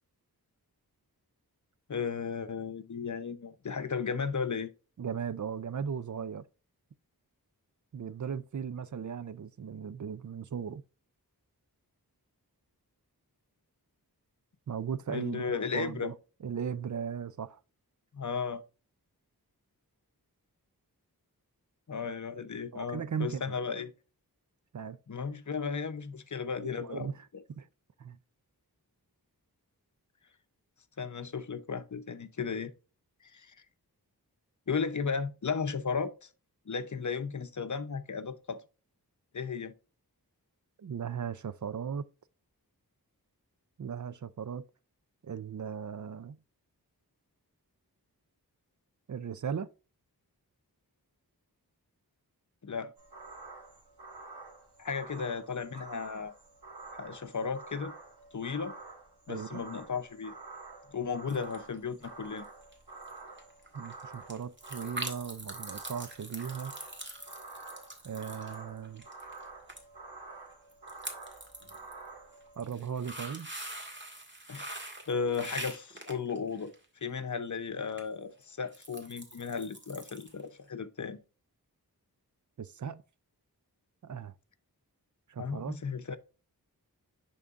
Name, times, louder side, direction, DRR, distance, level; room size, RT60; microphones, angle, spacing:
voice 1, 1.9-4.7 15.1-16.1 18.1-18.6 21.9-23.9 25.1-27.4 31.0-32.7 33.3-33.6 34.7-36.3 36.7-38.6 39.3-39.7 52.6-52.9 54.8-56.3 57.0-57.9 58.3-58.7 59.3-60.3 60.9-62.5 74.5-74.8 75.1-76.7 77.0-81.2 85.4-86.2, left 5 dB, 50° left, 0.7 m, -35 dB
voice 2, 5.0-6.4 7.9-10.8 14.7-16.1 16.4-17.6 22.7-23.5 24.7-25.0 26.6-27.7 28.0-28.2 40.8-42.1 43.8-44.6 45.2-46.4 49.1-49.7 59.3-59.6 63.7-66.7 68.0-69.0 72.6-73.5 82.6-83.0 84.0-84.3 85.3-85.8, right 7 dB, 50° right, 0.5 m, -37 dB
sound 1, 53.0-72.6, right 3 dB, 90° right, 1.6 m, -48 dB
sound 2, 61.3-61.8 62.0-62.4 62.7-62.8 63.0-63.1 63.4-69.4 69.7-69.8 70.1-70.2 70.7-71.9 72.4-76.8 77.9-78.0 78.4-80.4 80.7-80.8, right 1 dB, 30° right, 1.8 m, -43 dB
10.5 x 3.8 x 2.4 m
wide cardioid pair, 65°, 38 cm